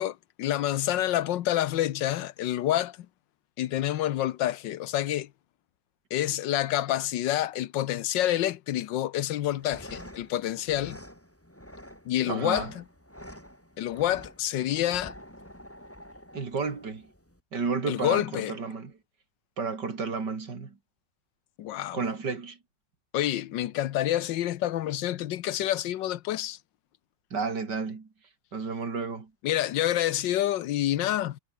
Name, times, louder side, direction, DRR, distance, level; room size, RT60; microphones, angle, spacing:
voice 1, 0.0-3.0 3.6-5.3 6.1-11.0 12.0-12.8 13.8-15.1 17.9-18.5 21.6-22.0 23.1-26.6 29.4-31.4, left 13 dB, 90° left, 1.5 m, -28 dB
sound 1, 9.4-17.4, equal, 5° left, 7.1 m, -48 dB
voice 2, 12.3-12.7 16.3-17.1 17.5-18.9 19.6-20.8 21.9-22.6 27.3-28.1 28.5-29.3, right 4 dB, 65° right, 3.4 m, -32 dB
omnidirectional pair, 1.9 m